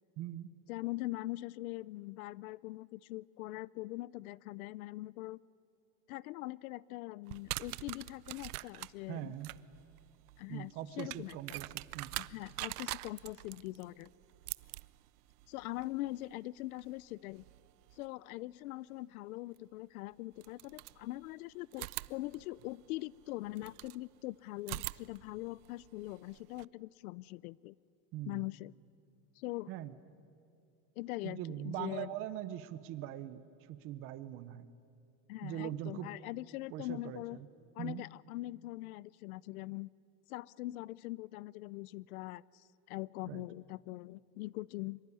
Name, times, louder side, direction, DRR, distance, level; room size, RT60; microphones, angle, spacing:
voice 1, 0.2-0.5 9.1-9.5 10.5-12.1 28.1-28.5 29.7-29.9 31.2-33.4 33.7-34.7 35.4-36.1 36.7-37.2 37.8-38.0 43.3-43.4, right 13 dB, 30° right, 14 dB, 0.8 m, -41 dB
voice 2, 0.7-5.4 6.1-9.4 10.4-11.6 12.2-14.1 15.5-17.4 18.0-27.7 28.3-28.7 29.4-29.7 31.0-32.1 35.3-37.4 37.8-39.9 40.3-45.0, left 18 dB, 70° left, 23 dB, 0.6 m, -42 dB
sound 1, 7.3-18.1 19.6-19.7 20.4-21.3 21.7-24.0 24.6-26.6, right 20 dB, 80° right, 0.7 m, -45 dB
24.0 x 24.0 x 9.8 m, 2.5 s
supercardioid pair, 180°, 44 cm